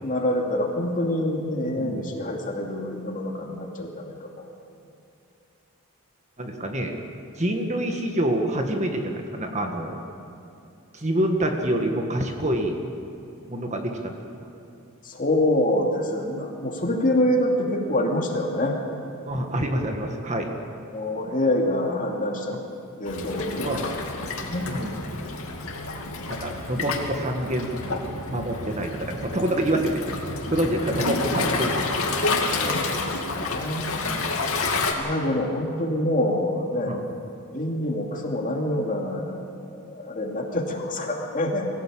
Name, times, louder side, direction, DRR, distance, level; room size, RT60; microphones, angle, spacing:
voice 1, 0.0-4.5 15.0-18.8 20.9-22.5 23.0-23.8 24.4-24.8 26.2-26.5 32.6-33.9 34.8-36.9 37.5-39.4 39.7-41.7, left 1 dB, 35° left, 0 dB, 2.6 m, -26 dB
voice 2, 1.7-2.1 6.4-7.0 7.4-10.0 10.9-12.8 13.5-14.1 19.3-20.5 21.3-21.4 23.6-23.8 24.7-25.0 26.3-30.0 30.5-31.7 34.0-34.4 36.9-37.0, right 1 dB, 30° right, 3 dB, 1.7 m, -27 dB
Waves surf, 23.1-34.9, left 3 dB, 70° left, 2.5 m, -29 dB
24.0 x 15.5 x 8.7 m, 2.6 s
head